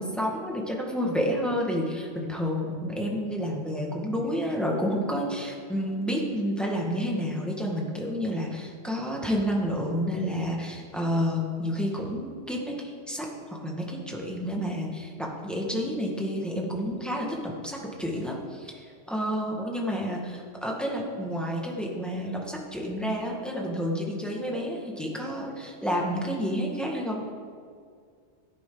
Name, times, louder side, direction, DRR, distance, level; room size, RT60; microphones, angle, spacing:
voice 1, 0.0-14.9 15.2-27.3, equal, ahead, -2 dB, 1.8 m, -30 dB
16.5 x 10.5 x 3.9 m, 2.1 s
omnidirectional pair, 1.2 m